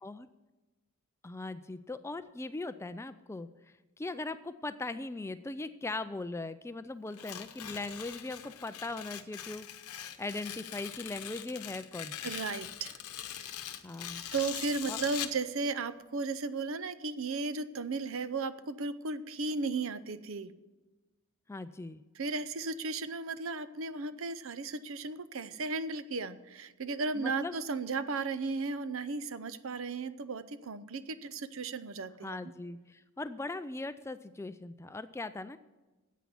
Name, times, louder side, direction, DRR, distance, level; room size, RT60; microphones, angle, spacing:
voice 1, 1.2-9.7 10.2-12.3 13.8-14.2 14.9-15.0 21.5-22.0 27.1-27.5 32.2-35.6, left 2 dB, 10° left, 12 dB, 0.3 m, -39 dB
Tearing, 7.1-15.4, left 10 dB, 85° left, 0.9 m, -42 dB
voice 2, 12.2-13.0 13.4-13.5 14.3-20.5 22.2-32.4, right 4 dB, 60° right, 14 dB, 0.6 m, -35 dB
10.0 x 8.3 x 9.4 m, 1.2 s
head